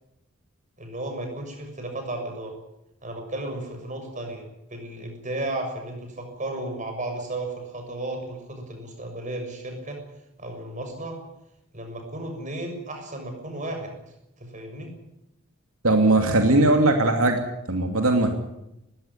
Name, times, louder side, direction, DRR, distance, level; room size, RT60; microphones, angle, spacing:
voice 1, 0.8-2.5 3.0-4.4 4.7-10.0 10.4-11.2 11.7-14.0 14.4-14.9, right 1 dB, 35° right, 4 dB, 6.8 m, -34 dB
voice 2, 15.8-17.4 17.7-18.3, right 2 dB, 80° right, 4 dB, 2.7 m, -19 dB
20.5 x 16.5 x 9.9 m, 0.86 s
head